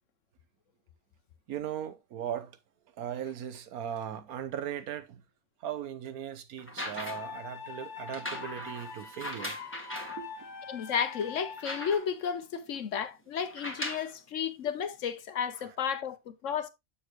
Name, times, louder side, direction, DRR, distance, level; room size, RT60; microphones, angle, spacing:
voice 1, 1.5-2.6 3.0-5.2 5.6-9.6 10.2-10.5 12.6-12.7 15.6-15.7, right 9 dB, 80° right, 1.3 m, -38 dB
sound 1, 6.6-7.4 8.1-10.2 10.8-10.9 11.2-12.3 13.4-14.1 15.1-15.2, left 1 dB, 10° left, 1.4 m, -39 dB
sound 2, 6.9-12.0, left 5 dB, 35° left, 1.1 m, -43 dB
voice 2, 10.7-16.7, left 7 dB, 65° left, 1.1 m, -33 dB
7.1 x 6.5 x 2.9 m
omnidirectional pair, 1.5 m